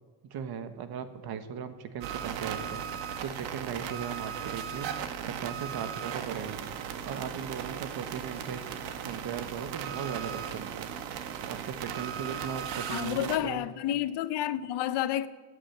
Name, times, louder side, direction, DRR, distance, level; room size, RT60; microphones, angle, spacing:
voice 1, 0.2-4.9 5.3-8.6 9.0-10.9 11.5-13.6, right 7 dB, 60° right, 1.5 m, -38 dB
sound 1, 2.0-13.4, right 8 dB, 85° right, 1.5 m, -37 dB
voice 2, 12.9-15.3, left 12 dB, 70° left, 0.9 m, -30 dB
18.0 x 9.1 x 7.3 m
cardioid pair, 130°, 43 cm